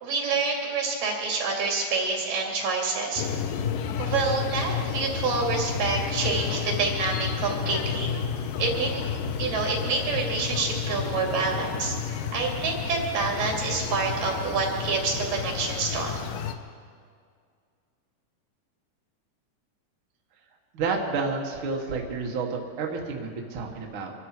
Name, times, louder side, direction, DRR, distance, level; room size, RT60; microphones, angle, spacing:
voice 1, 0.0-3.2 4.0-8.1 8.6-9.0 9.4-12.0 12.3-16.2, right 4 dB, 80° right, -1 dB, 4.1 m, -27 dB
sound 1, 3.2-16.5, left 6 dB, 90° left, 2.4 m, -31 dB
voice 2, 20.7-24.1, right 4 dB, 50° right, 0 dB, 2.0 m, -30 dB
25.0 x 12.5 x 4.5 m, 2.1 s
omnidirectional pair, 3.8 m